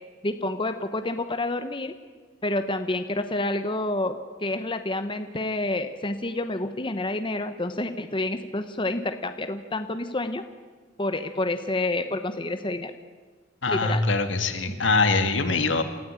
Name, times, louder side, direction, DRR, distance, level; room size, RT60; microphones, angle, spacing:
voice 1, 0.2-1.9 2.4-10.4 11.0-12.9 13.7-14.0, left 2 dB, 25° left, 8 dB, 1.0 m, -28 dB
voice 2, 13.6-15.8, left 3 dB, 75° left, 7 dB, 2.1 m, -23 dB
28.0 x 14.0 x 8.9 m, 1.4 s
head